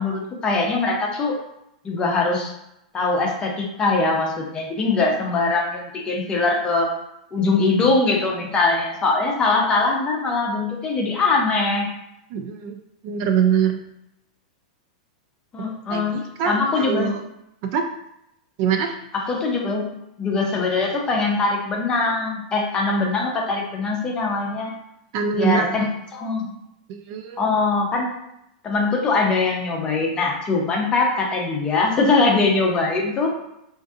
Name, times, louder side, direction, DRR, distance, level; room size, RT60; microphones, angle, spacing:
voice 1, 0.0-1.4 1.8-2.5 2.9-6.9 7.3-11.9 15.5-16.2 16.5-17.1 19.1-19.9 20.2-24.7 25.3-25.8 26.1-26.6 27.4-28.1 28.6-33.3, left 3 dB, 20° left, 0 dB, 0.7 m, -22 dB
voice 2, 12.3-12.8 13.0-13.8 15.9-17.2 17.6-17.9 18.6-19.0 25.1-25.7 26.9-27.5, right 7 dB, 45° right, 5 dB, 0.3 m, -23 dB
3.6 x 2.6 x 2.4 m, 0.81 s
supercardioid pair, 140°, 4 cm